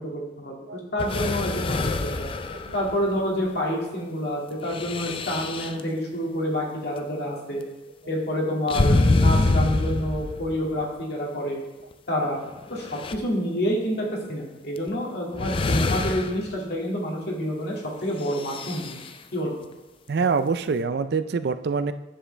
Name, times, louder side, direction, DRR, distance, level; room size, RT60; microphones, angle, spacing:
voice 1, 0.0-2.3 2.7-7.6 8.1-11.6 12.1-12.4 12.7-19.0 19.3-19.6, equal, 55° left, -2 dB, 2.1 m, -28 dB
sound 1, 1.0-3.2 4.6-5.8 8.7-10.7 11.9-12.0 12.6-13.2 14.8-14.9 15.3-16.5 18.2-19.1, left 2 dB, 25° left, 0.4 m, -25 dB
voice 2, 20.1-21.9, right 5 dB, 55° right, 12 dB, 0.4 m, -25 dB
10.0 x 7.5 x 3.3 m, 1.1 s
head